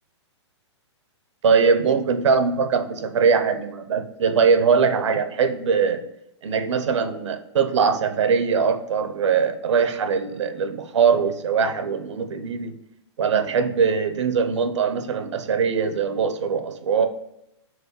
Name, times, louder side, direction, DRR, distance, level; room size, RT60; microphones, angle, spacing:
voice 1, 1.4-6.0 6.4-12.8 13.2-17.1, right 6 dB, 80° right, 9 dB, 0.7 m, -21 dB
4.8 x 3.8 x 5.4 m, 0.84 s
hypercardioid pair, 140°, 15 cm